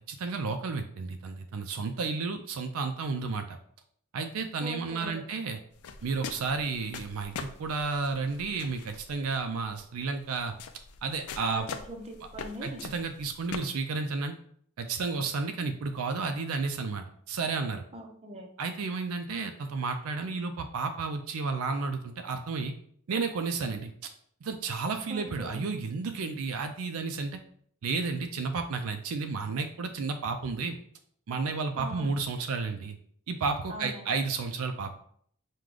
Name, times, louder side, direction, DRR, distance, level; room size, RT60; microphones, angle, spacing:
voice 1, 0.1-3.6 4.1-5.6 6.0-10.5 11.0-11.7 12.6-14.3 14.8-17.8 18.6-22.7 23.1-23.9 24.4-27.4 27.8-30.8 31.3-33.0 33.3-34.9, right 4 dB, 75° right, 6 dB, 0.4 m, -32 dB
voice 2, 4.6-5.3 11.5-11.6 11.9-12.8 17.9-18.5 25.1-25.6 31.7-32.1 33.7-34.0, right 1 dB, 30° right, 3 dB, 0.6 m, -41 dB
sound 1, 5.7-13.6, left 6 dB, 85° left, 0.4 m, -43 dB
4.7 x 2.2 x 3.8 m, 0.62 s
head